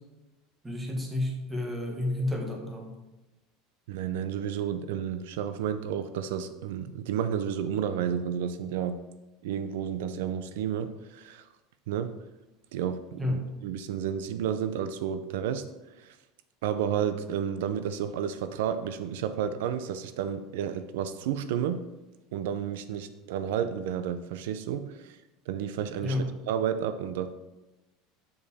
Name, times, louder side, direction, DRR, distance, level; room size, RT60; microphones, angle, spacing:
voice 1, 0.6-2.9 13.2-13.5 26.0-26.3, left 1 dB, 10° right, 2 dB, 1.3 m, -30 dB
voice 2, 3.9-9.0 9.4-11.4 11.9-12.1 12.7-15.6 16.0-16.1 16.6-21.8 22.3-25.2 25.5-27.3, right 8 dB, 85° right, 11 dB, 0.5 m, -31 dB
7.1 x 5.1 x 4.1 m, 1.0 s
supercardioid pair, 150°, 0 cm